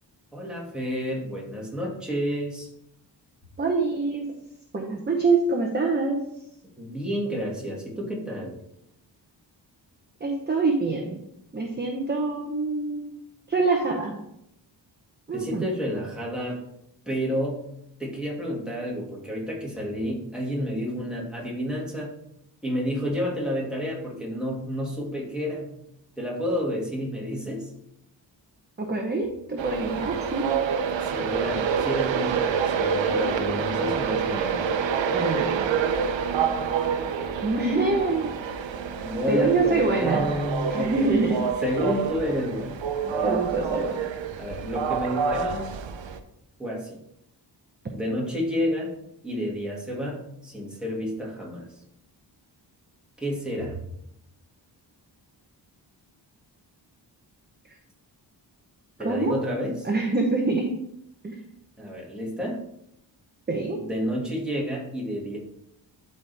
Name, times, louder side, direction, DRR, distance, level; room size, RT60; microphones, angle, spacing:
voice 1, 0.3-2.7 6.8-8.5 15.3-16.6 17.1-17.6 18.0-22.1 22.6-25.7 26.2-27.7 31.0-34.6 39.0-41.2 41.6-42.7 43.0-43.4 44.4-45.7 46.6-46.9 47.9-48.9 49.2-51.7 53.2-53.8 59.0-59.9 61.8-62.6 63.7-65.4, equal, ahead, -4 dB, 2.2 m, -30 dB
voice 2, 3.6-4.3 4.7-6.2 10.2-11.2 11.5-13.1 13.5-14.1 15.3-15.7 28.8-30.5 35.1-35.8 36.4-36.5 37.4-38.3 39.3-40.2 40.7-41.4 43.2-44.0 59.0-59.4 59.8-60.7 61.2-61.3 63.5-63.8, right 3 dB, 25° right, 1 dB, 0.9 m, -25 dB
Train, 29.6-46.2, right 6 dB, 85° right, 0.8 m, -27 dB
12.0 x 4.3 x 3.4 m, 0.78 s
wide cardioid pair, 145°, 44 cm